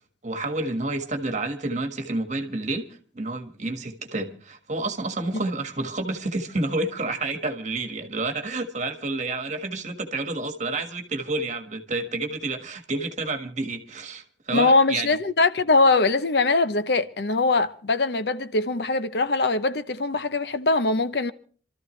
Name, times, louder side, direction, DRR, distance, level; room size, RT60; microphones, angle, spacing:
voice 1, 0.2-15.1, right 2 dB, 40° right, 1.6 m, -29 dB
voice 2, 14.5-21.3, left 3 dB, 65° left, 0.8 m, -22 dB
27.0 x 13.5 x 3.2 m
head